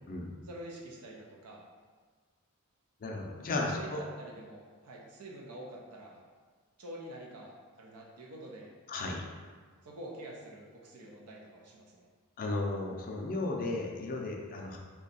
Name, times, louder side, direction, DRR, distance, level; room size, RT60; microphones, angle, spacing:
voice 1, 0.4-1.6 3.8-6.2 6.8-8.7 9.8-12.0, right 1 dB, 85° right, -2 dB, 0.6 m, -47 dB
voice 2, 3.0-4.0 8.9-9.2 12.4-14.8, left 2 dB, 40° left, 0 dB, 0.4 m, -34 dB
2.7 x 2.3 x 4.0 m, 1.5 s
head